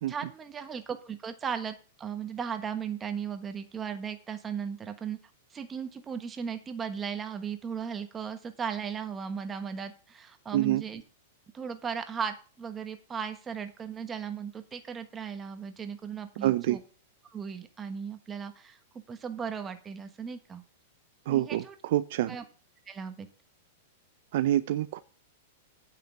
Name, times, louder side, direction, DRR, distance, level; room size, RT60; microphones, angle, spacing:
voice 1, 0.1-5.2 5.5-11.0 11.5-16.8 17.3-18.8 19.1-20.6 21.3-21.7 22.3-22.4 22.9-23.3, right 7 dB, 20° right, 8 dB, 1.3 m, -36 dB
voice 2, 16.4-16.8 21.3-22.4 24.3-25.0, right 13 dB, 60° right, 12 dB, 0.5 m, -27 dB
9.4 x 5.7 x 6.9 m, 0.38 s
hypercardioid pair, 135°, 0 cm